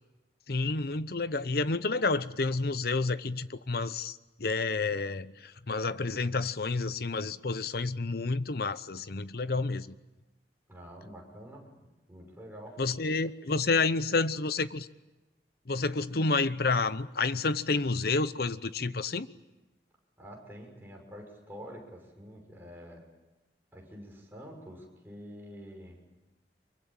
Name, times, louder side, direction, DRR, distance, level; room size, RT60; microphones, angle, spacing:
voice 1, 0.5-9.9 12.8-14.9 15.7-19.3, left 3 dB, 60° left, 14 dB, 0.9 m, -30 dB
voice 2, 10.7-11.8 12.1-12.8 20.2-23.0 23.7-26.0, equal, 10° right, 0 dB, 6.3 m, -47 dB
25.0 x 23.0 x 8.9 m, 1.1 s
head